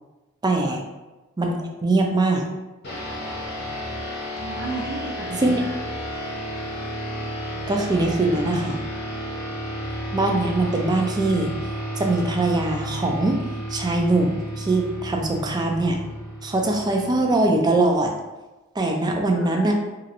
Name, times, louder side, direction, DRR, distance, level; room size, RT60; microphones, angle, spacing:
voice 1, 0.4-0.8 1.4-1.6 1.8-2.4 5.4-5.6 7.7-8.8 10.1-11.5 12.0-13.3 13.7-16.0 16.4-18.1 18.8-19.7, right 2 dB, 20° right, 2 dB, 0.4 m, -22 dB
sound 1, 2.8-17.7, equal, 55° left, 1.0 m, -32 dB
voice 2, 4.4-5.8 19.1-19.7, right 3 dB, 60° right, -8 dB, 0.6 m, -34 dB
3.0 x 2.5 x 2.9 m, 1.1 s
head